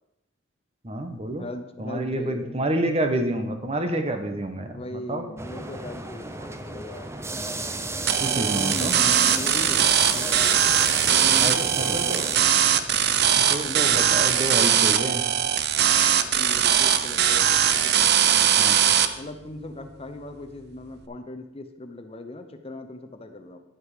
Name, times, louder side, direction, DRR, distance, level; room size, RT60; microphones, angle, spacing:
voice 1, 0.8-1.4 1.8-4.8 5.1-5.3 8.2-9.0 11.4-12.3 13.4-15.3 18.6-18.8, right 1 dB, 35° right, 7 dB, 1.0 m, -28 dB
voice 2, 1.4-2.6 4.5-7.1 8.2-10.4 11.1-12.5 13.6-14.3 14.5-15.2 15.6-18.6 19.1-23.6, left 1 dB, 30° left, 7 dB, 0.8 m, -39 dB
sound 1, 5.4-16.3 16.6-16.7 17.4-17.5 19.0-19.1, right 3 dB, 15° right, 0.6 m, -33 dB
sound 2, 8.1-19.1, right 9 dB, 60° right, 0.7 m, -21 dB
9.9 x 7.9 x 4.9 m, 0.85 s
head